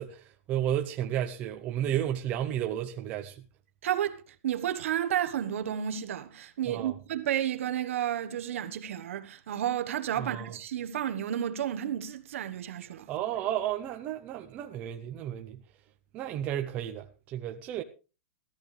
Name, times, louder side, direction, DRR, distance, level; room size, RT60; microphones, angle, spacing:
voice 1, 0.0-3.4 6.7-7.0 10.2-10.5 13.1-15.6 16.1-17.8, right 11 dB, 20° right, 0.6 m, -32 dB
voice 2, 3.8-13.1, right 10 dB, 55° right, 1.2 m, -32 dB
15.5 x 13.5 x 3.3 m
supercardioid pair, 180°, 8 cm